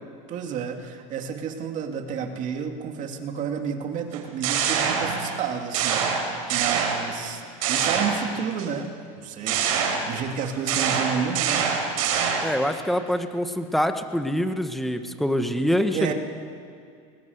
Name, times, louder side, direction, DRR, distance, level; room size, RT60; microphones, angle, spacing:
voice 1, 0.3-8.9 9.2-9.6 10.0-11.7 15.9-16.1, right 7 dB, 45° right, 4 dB, 2.5 m, -31 dB
sound 1, 4.1-5.4 5.7-7.3 7.6-8.7 9.5-12.6, right 6 dB, 85° right, 4.4 m, -25 dB
voice 2, 12.4-16.1, equal, ahead, 8 dB, 1.3 m, -25 dB
21.5 x 19.0 x 8.0 m, 2.3 s
supercardioid pair, 125°, 18 cm